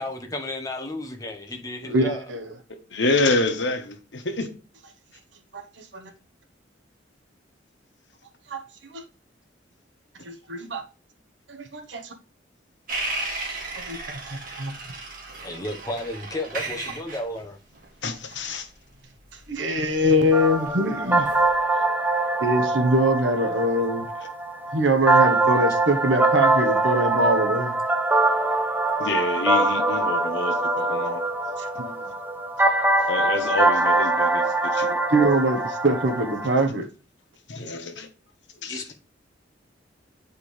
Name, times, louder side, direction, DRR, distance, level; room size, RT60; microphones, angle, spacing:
voice 1, 0.0-2.3 15.4-17.6 38.7-38.9, left 1 dB, 20° left, 1.1 m, -33 dB
voice 2, 1.9-2.5 5.5-6.1 8.5-8.6 8.9-9.0 10.2-10.8 11.5-12.1 13.9-14.7 19.5-21.3 22.4-24.0 24.7-27.7 31.8-32.0 35.1-36.9, right 1 dB, 70° right, 1.1 m, -23 dB
voice 3, 2.9-4.5 18.0-18.7 29.0-31.2 33.1-35.0 37.5-38.1 38.6-38.8, left 2 dB, 70° left, 1.3 m, -27 dB
sound 1, 12.9-20.7 21.2-21.6, right 2 dB, 50° right, 2.1 m, -35 dB
sound 2, 20.3-36.7, right 2 dB, 10° right, 0.7 m, -23 dB
9.1 x 4.9 x 3.3 m
head